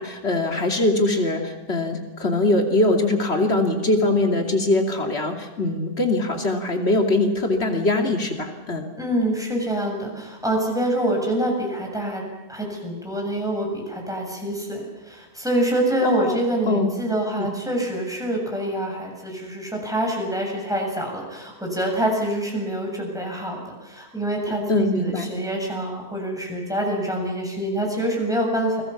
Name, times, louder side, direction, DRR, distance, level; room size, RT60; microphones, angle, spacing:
voice 1, 0.0-8.9 16.0-16.4 16.7-16.9 24.5-25.3, left 2 dB, 85° left, 3 dB, 3.0 m, -22 dB
voice 2, 9.0-12.2 12.5-28.8, right 1 dB, 5° right, 0 dB, 7.9 m, -26 dB
29.5 x 22.0 x 7.3 m, 1.2 s
omnidirectional pair, 1.1 m